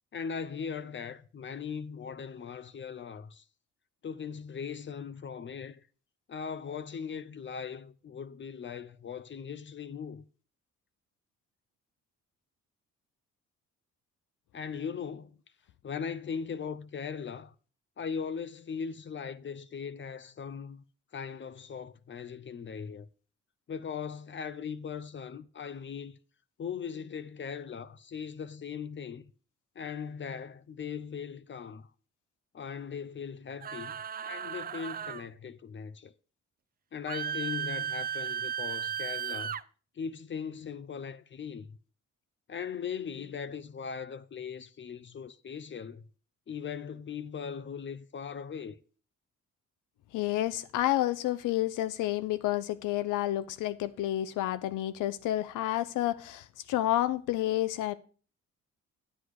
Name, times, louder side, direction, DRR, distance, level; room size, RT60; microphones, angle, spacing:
voice 1, 0.1-3.4 4.0-5.8 6.3-10.2 14.5-15.4 15.8-17.5 18.0-20.8 21.1-23.1 23.7-26.2 26.6-29.2 29.8-31.9 32.5-36.1 36.9-39.6 39.9-41.8 42.5-46.0 46.5-48.8, left 6 dB, 40° left, 0.7 m, -39 dB
sound 1, 33.6-35.3 37.1-39.6, right 8 dB, 30° right, 0.5 m, -35 dB
voice 2, 50.1-57.9, left 14 dB, 85° left, 0.6 m, -30 dB
10.0 x 8.0 x 4.8 m
cardioid pair, 90°, 30 cm